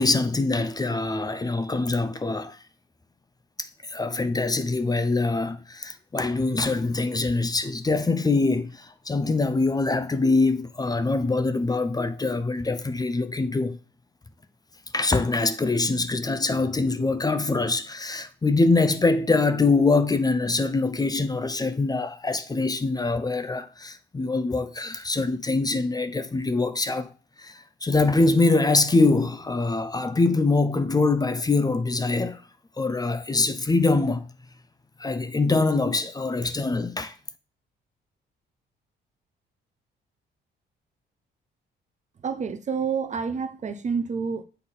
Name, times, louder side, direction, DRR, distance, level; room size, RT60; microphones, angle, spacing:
voice 1, 0.0-2.6 3.6-13.8 14.9-27.1 27.4-32.4 32.8-34.3 35.0-37.1, left 3 dB, 20° left, 0.6 m, -24 dB
voice 2, 42.2-44.4, right 6 dB, 35° right, 0.6 m, -28 dB
7.6 x 4.0 x 4.0 m
cardioid pair, 90°, 20 cm